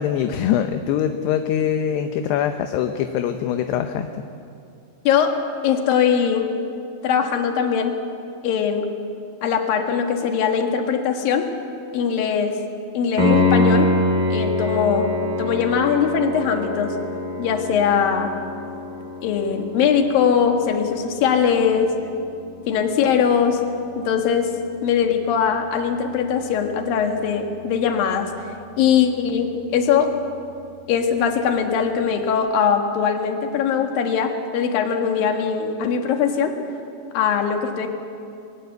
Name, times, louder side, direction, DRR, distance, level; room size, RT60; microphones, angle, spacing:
voice 1, 0.0-4.1, left 9 dB, 75° left, 7 dB, 2.7 m, -23 dB
voice 2, 5.0-5.4 5.6-6.5 7.0-7.9 8.4-8.9 9.4-11.5 11.9-12.5 12.9-13.9 14.3-15.1 15.4-16.9 17.4-18.3 19.2-21.9 22.7-23.6 24.0-24.5 24.8-28.3 28.8-30.1 30.9-36.5 37.1-37.9, left 7 dB, 60° left, 4 dB, 3.1 m, -21 dB
Piano, 13.2-23.8 27.1-27.2, left 2 dB, 25° right, 2.4 m, -25 dB
22.0 x 19.5 x 8.0 m, 2.5 s
omnidirectional pair, 5.1 m